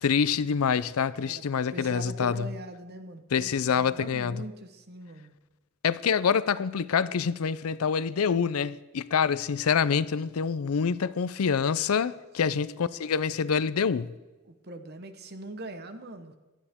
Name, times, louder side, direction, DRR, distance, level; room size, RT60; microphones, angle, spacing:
voice 1, 0.0-2.4 3.3-4.3 5.8-14.1, left 6 dB, 85° left, 17 dB, 0.5 m, -26 dB
voice 2, 1.1-1.4 1.7-5.3 12.4-12.7 14.4-16.3, right 2 dB, 50° right, 9 dB, 1.0 m, -42 dB
17.0 x 12.0 x 3.6 m, 1.1 s
head